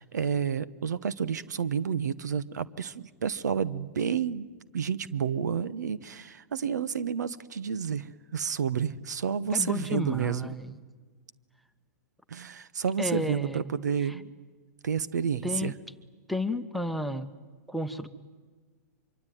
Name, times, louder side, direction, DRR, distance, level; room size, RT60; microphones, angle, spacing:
voice 1, 0.0-4.5 4.7-10.5 12.3-14.3 14.8-15.7, right 7 dB, 90° right, 17 dB, 1.1 m, -30 dB
voice 2, 9.5-10.7 13.0-13.6 14.0-14.1 15.4-15.7 16.3-17.3 17.7-18.1, left 1 dB, ahead, 14 dB, 1.1 m, -32 dB
25.0 x 24.0 x 9.3 m, 1.4 s
hypercardioid pair, 135°, 9 cm